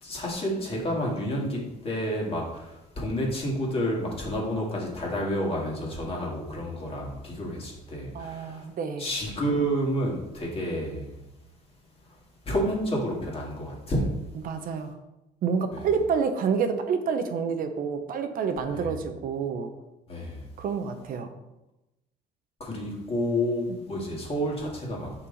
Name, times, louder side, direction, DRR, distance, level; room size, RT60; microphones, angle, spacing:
voice 1, 0.0-8.7 9.0-11.1 12.5-14.1 15.7-15.9 18.7-18.9 20.1-20.4 22.6-25.1, equal, 35° left, -2 dB, 2.1 m, -30 dB
voice 2, 8.1-9.1 14.4-14.9 15.4-19.7 20.6-21.3 23.7-23.8, right 6 dB, 55° right, 7 dB, 0.7 m, -28 dB
5.6 x 5.4 x 4.0 m, 0.95 s
cardioid pair, 110°, 17 cm